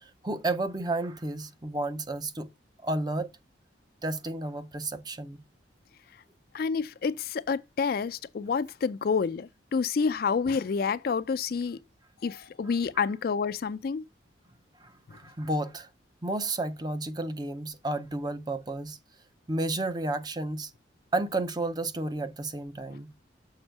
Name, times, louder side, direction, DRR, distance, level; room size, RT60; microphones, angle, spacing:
voice 1, 0.0-2.5 2.8-3.3 4.0-5.4 14.8-15.9 16.2-19.0 19.5-20.7 21.1-23.1, right 2 dB, 20° right, 0.5 m, -32 dB
voice 2, 6.5-11.8 12.2-14.0, left 5 dB, 55° left, 0.4 m, -28 dB
6.6 x 4.3 x 4.4 m
head